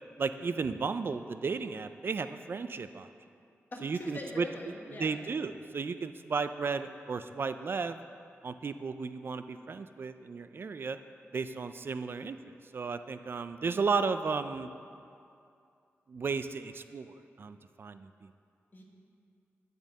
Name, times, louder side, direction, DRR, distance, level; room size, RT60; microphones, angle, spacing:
voice 1, 0.2-3.1 3.8-4.5 5.0-8.0 8.4-11.0 11.3-12.4 12.7-14.7 16.1-18.1, right 5 dB, 50° right, 10 dB, 0.4 m, -34 dB
voice 2, 3.7-5.2 18.7-18.8, left 1 dB, 45° left, 0 dB, 1.5 m, -42 dB
10.5 x 5.3 x 7.4 m, 2.5 s
wide cardioid pair, 100°, 5 cm